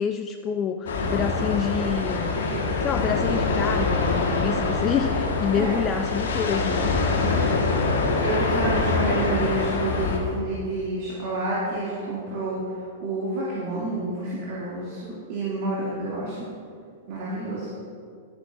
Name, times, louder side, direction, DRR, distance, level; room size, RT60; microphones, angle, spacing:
voice 1, 0.0-2.4 2.8-6.9, left 7 dB, 25° left, 6 dB, 0.4 m, -27 dB
sound 1, 0.9-10.2, left 3 dB, 65° left, 1.5 m, -24 dB
voice 2, 8.2-12.6 13.0-16.5 17.1-17.7, right 2 dB, 50° right, -7 dB, 2.5 m, -29 dB
12.0 x 10.0 x 2.6 m, 2.2 s
figure-of-eight pair, 100°, 0 cm